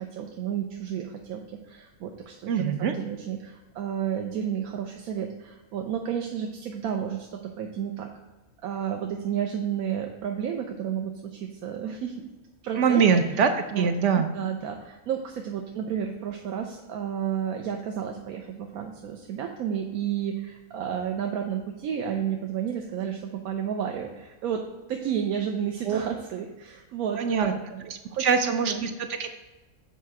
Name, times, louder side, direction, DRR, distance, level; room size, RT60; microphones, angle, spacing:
voice 1, 0.0-8.1 8.6-12.3 12.6-13.9 14.2-28.9, right 8 dB, 80° right, 3 dB, 1.1 m, -32 dB
voice 2, 2.5-2.9 12.8-14.3 25.9-26.0 27.2-27.5 28.2-29.3, right 6 dB, 65° right, 7 dB, 0.8 m, -23 dB
7.4 x 4.3 x 4.7 m, 1.1 s
omnidirectional pair, 1.5 m